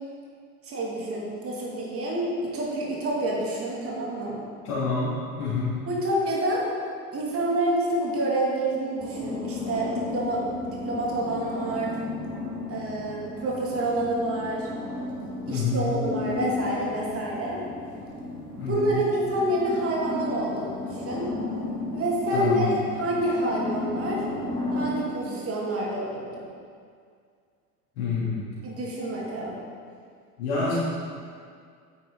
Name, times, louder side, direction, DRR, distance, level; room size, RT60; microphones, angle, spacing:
voice 1, 0.6-4.4 5.9-6.6 7.1-11.9 12.7-14.7 15.5-17.6 18.7-21.3 21.9-24.2 24.7-26.2 28.6-29.6, right 1 dB, 30° right, -4 dB, 2.3 m, -28 dB
voice 2, 4.6-5.7 15.5-15.9 18.6-18.9 22.3-22.7 28.0-28.5 30.4-30.7, left 4 dB, 60° left, -8 dB, 2.5 m, -27 dB
sound 1, 9.0-24.9, left 2 dB, 10° left, 2.2 m, -34 dB
9.2 x 8.8 x 3.8 m, 2.2 s
figure-of-eight pair, 75°, 48 cm